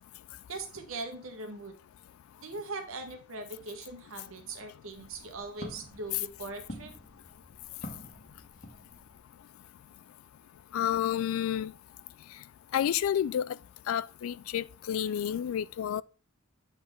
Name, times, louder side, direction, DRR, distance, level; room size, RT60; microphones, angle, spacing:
voice 1, 0.5-1.7 2.4-6.9, right 3 dB, 75° right, 1.3 m, -40 dB
Walk footsteps, 4.8-9.3, left 1 dB, 40° left, 1.3 m, -47 dB
voice 2, 10.7-11.7 12.7-13.6 13.9-16.0, left 10 dB, 75° left, 0.3 m, -30 dB
7.8 x 4.1 x 3.6 m
head